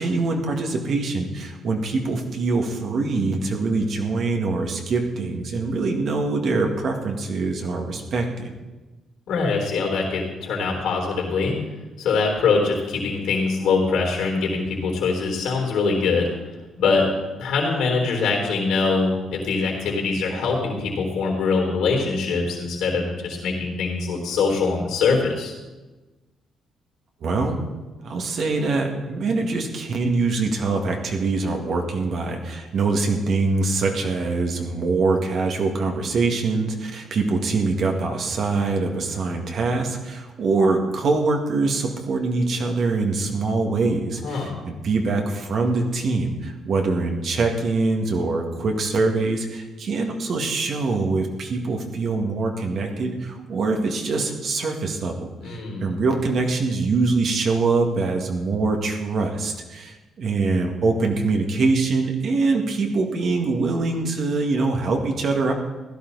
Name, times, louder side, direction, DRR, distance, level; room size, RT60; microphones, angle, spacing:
voice 1, 0.0-8.5 27.2-27.6 28.0-65.5, right 3 dB, 60° right, 2 dB, 2.0 m, -24 dB
voice 2, 9.3-11.5 12.0-16.3 16.8-17.1 17.4-25.5 44.2-44.5 55.4-55.9, left 4 dB, 80° left, 0 dB, 3.7 m, -23 dB
16.0 x 11.5 x 4.1 m, 1.2 s
cardioid pair, 90°, 0 cm